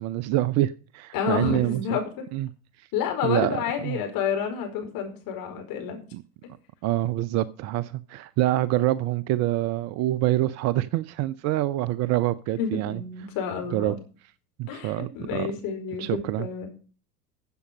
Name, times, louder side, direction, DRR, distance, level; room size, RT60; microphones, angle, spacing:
voice 1, 0.0-2.0 2.3-2.5 3.2-4.0 6.1-6.2 6.8-13.0 13.7-13.9 14.6-15.1 15.3-15.5 16.0-16.5, right 15 dB, 35° right, 0.6 m, -26 dB
voice 2, 1.1-2.3 2.9-6.0 12.6-14.0 14.7-16.7, left 7 dB, 45° left, 4.8 m, -29 dB
13.5 x 7.7 x 5.3 m
figure-of-eight pair, 85°, 47 cm